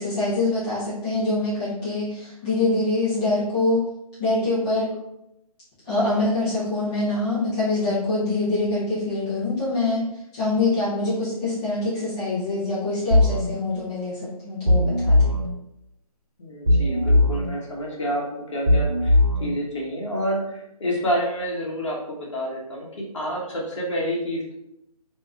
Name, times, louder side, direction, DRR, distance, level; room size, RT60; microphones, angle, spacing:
voice 1, 0.0-3.8 4.2-4.9 5.8-10.0 10.3-15.3, left 2 dB, 10° left, -13 dB, 0.5 m, -24 dB
sound 1, 13.1-13.5 14.7-15.5 16.7-17.5 18.7-19.5, left 1 dB, 85° right, 0.8 m, -18 dB
voice 2, 16.4-18.2 18.5-24.5, equal, 50° left, -2 dB, 1.0 m, -28 dB
3.0 x 2.7 x 2.3 m, 0.83 s
figure-of-eight pair, 155°, 19 cm